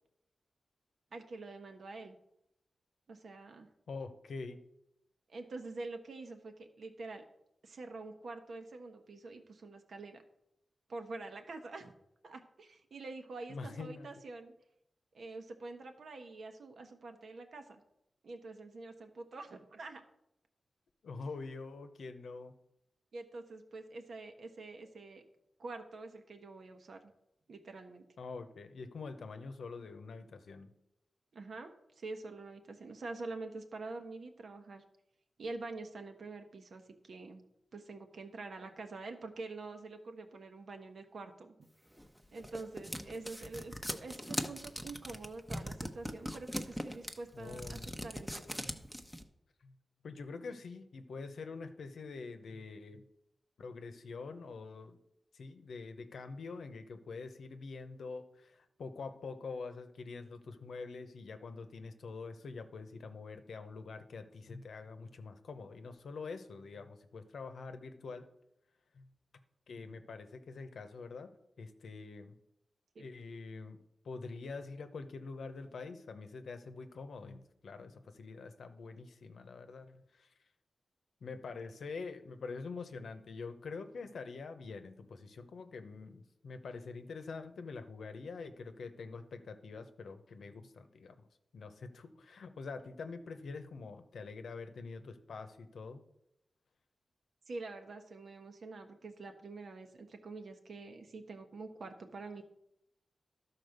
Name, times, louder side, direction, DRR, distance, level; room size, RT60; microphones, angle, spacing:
voice 1, 1.1-2.2 3.1-3.7 5.3-7.2 7.6-10.2 10.9-11.9 12.2-14.5 15.1-17.8 18.2-20.0 23.1-25.2 25.6-27.1 27.5-28.0 31.3-31.7 32.0-34.8 35.4-37.4 37.7-41.5 42.3-48.6 72.9-73.0 97.5-102.4, right 3 dB, 70° right, 6 dB, 1.2 m, -46 dB
voice 2, 3.9-4.6 13.5-14.1 21.0-22.6 28.2-30.7 47.3-47.9 49.6-49.8 50.0-53.1 53.6-55.0 55.3-68.3 68.9-69.1 69.7-71.3 71.6-72.4 73.0-73.8 74.0-80.3 81.2-91.3 91.5-96.0, left 4 dB, 85° left, 9 dB, 0.8 m, -45 dB
sound 1, 42.0-49.2, equal, ahead, 0.8 m, -40 dB
12.0 x 4.3 x 6.6 m, 0.81 s
wide cardioid pair, 90°, 0 cm